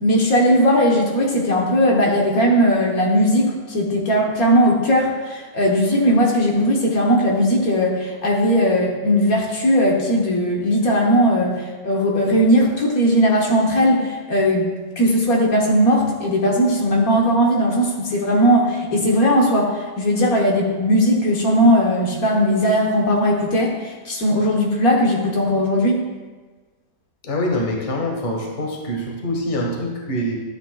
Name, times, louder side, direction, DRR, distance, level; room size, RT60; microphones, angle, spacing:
voice 1, 0.0-14.7 15.0-26.1, equal, 60° left, -1 dB, 1.6 m, -18 dB
voice 2, 27.2-30.4, left 1 dB, 30° left, 0 dB, 1.2 m, -25 dB
12.0 x 8.4 x 2.3 m, 1.3 s
omnidirectional pair, 1.8 m